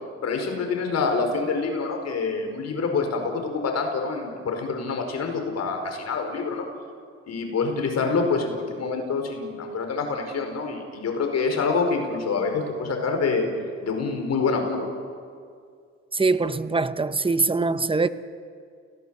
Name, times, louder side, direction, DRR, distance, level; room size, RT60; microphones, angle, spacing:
voice 1, 0.2-6.7 7.3-13.5 13.8-14.9, left 4 dB, 60° left, 5.1 m, -26 dB
voice 2, 16.1-18.1, right 3 dB, 20° right, 1.0 m, -23 dB
29.5 x 18.0 x 7.9 m
cardioid pair, 90°, 30 cm